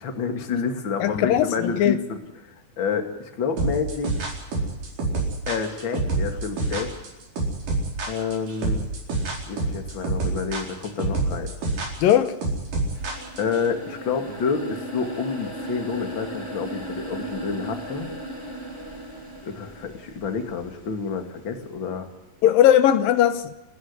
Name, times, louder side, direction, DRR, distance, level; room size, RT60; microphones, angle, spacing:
voice 1, 0.0-2.2 2.8-4.1 5.5-6.9 8.1-8.9 9.5-11.5 13.4-18.1 19.4-22.1, left 5 dB, 40° left, 6 dB, 2.7 m, -28 dB
voice 2, 1.0-2.0 12.0-12.4 22.4-23.5, left 11 dB, 85° left, 11 dB, 2.8 m, -18 dB
sound 1, 3.6-13.6, right 3 dB, 70° right, 6.2 m, -26 dB
sound 2, 12.9-20.9, right 1 dB, 10° left, 4.2 m, -36 dB
29.0 x 11.0 x 9.7 m, 0.98 s
omnidirectional pair, 4.0 m